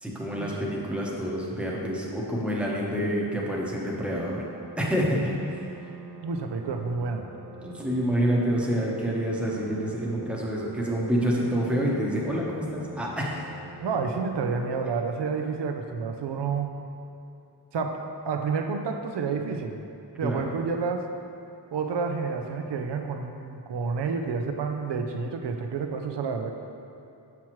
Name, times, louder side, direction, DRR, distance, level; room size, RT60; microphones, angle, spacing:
voice 1, 0.0-4.5 4.8-5.7 7.6-13.5 20.2-20.5, equal, 5° right, -4 dB, 1.0 m, -27 dB
sound 1, 3.9-14.8, right 5 dB, 35° right, 0.4 m, -45 dB
voice 2, 6.2-7.2 13.8-16.7 17.7-18.0 18.2-19.8 20.2-21.1 21.7-26.5, right 5 dB, 75° right, 4 dB, 0.6 m, -29 dB
7.2 x 5.9 x 3.1 m, 2.8 s
wide cardioid pair, 110°, 43 cm